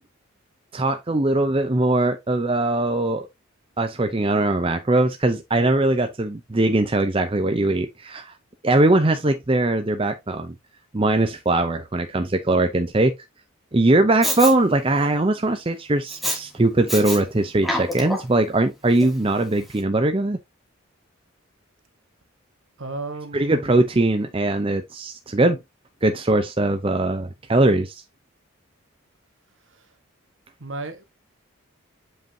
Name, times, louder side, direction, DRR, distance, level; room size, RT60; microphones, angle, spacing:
voice 1, 0.7-3.3 3.8-8.3 8.6-10.5 10.9-13.1 13.7-20.4 23.3-25.6 26.0-28.0, right 2 dB, 25° right, 0.6 m, -21 dB
Respiratory sounds, 14.2-14.5 16.1-16.4 16.9-17.2 17.6-18.4 19.0-19.1, equal, ahead, 1.5 m, -26 dB
voice 2, 22.8-23.6 29.7-29.9 30.6-31.0, right 3 dB, 65° right, 1.4 m, -34 dB
8.0 x 5.3 x 2.8 m
head